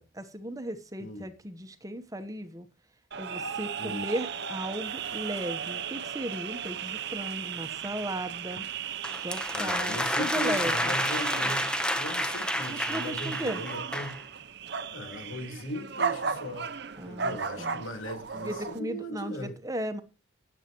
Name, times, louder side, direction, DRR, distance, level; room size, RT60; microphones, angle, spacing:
voice 1, 0.0-2.7 3.2-8.6 9.2-10.9 12.7-13.6 17.0-17.8 18.4-20.0, right 1 dB, 15° right, 1.0 m, -36 dB
sound 1, 3.1-18.8, right 7 dB, 55° right, 0.7 m, -36 dB
voice 2, 3.8-4.1 9.5-11.7 12.0-14.2 14.9-16.7 17.0-19.5, equal, 75° left, 3.6 m, -38 dB
sound 2, 9.0-14.2, left 1 dB, 5° left, 0.9 m, -30 dB
17.5 x 8.2 x 3.0 m
head